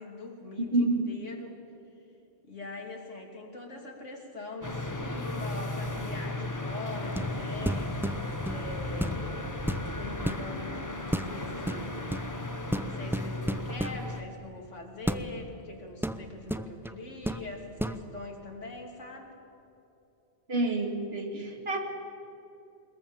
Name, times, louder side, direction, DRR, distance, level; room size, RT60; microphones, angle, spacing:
voice 1, 0.0-1.6 2.4-9.5 10.0-12.1 12.9-19.3, left 2 dB, 85° left, 1 dB, 3.3 m, -42 dB
voice 2, 0.7-1.1 20.5-21.8, right 2 dB, 55° right, 3 dB, 2.7 m, -28 dB
sound 1, 4.6-14.2, left 2 dB, 15° left, 1.2 m, -35 dB
sound 2, 7.1-7.4 7.7-8.6 9.0-9.3 9.6-10.4 11.1-11.3 11.7-12.3 12.7-14.0 15.1-15.3 16.0-17.0 17.3-17.4 17.8-18.0, equal, 5° right, 0.3 m, -32 dB
21.5 x 21.5 x 7.2 m, 2.8 s
omnidirectional pair, 1.2 m